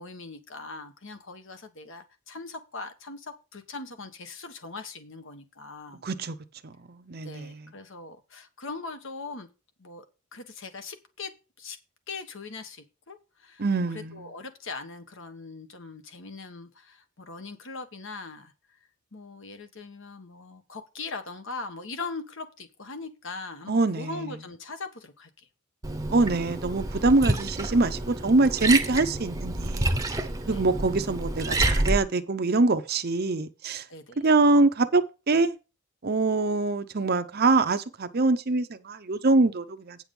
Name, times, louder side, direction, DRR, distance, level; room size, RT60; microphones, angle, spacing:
voice 1, 0.0-6.0 7.2-9.5 9.8-10.0 10.3-11.8 12.1-13.6 13.9-18.5 19.1-25.5 30.5-30.7 33.9-34.2, left 3 dB, 55° left, 1.3 m, -40 dB
voice 2, 6.0-6.4 6.6-7.6 13.6-14.2 23.7-24.2 26.1-30.0 30.5-33.8 34.2-35.6 36.0-40.0, right 3 dB, 45° right, 0.7 m, -24 dB
Liquid, 25.8-32.0, right 2 dB, 15° right, 0.9 m, -28 dB
9.0 x 6.1 x 5.4 m
head